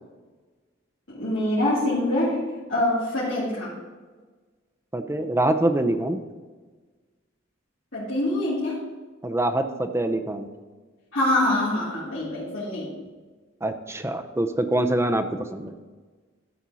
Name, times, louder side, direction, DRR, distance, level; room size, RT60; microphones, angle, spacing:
voice 1, 1.1-3.7 7.9-8.8 11.1-13.0, left 1 dB, 70° left, -11 dB, 2.8 m, -25 dB
voice 2, 4.9-6.2 9.2-10.5 13.6-15.7, right 1 dB, 15° right, 7 dB, 0.6 m, -25 dB
12.5 x 4.4 x 6.2 m, 1.4 s
head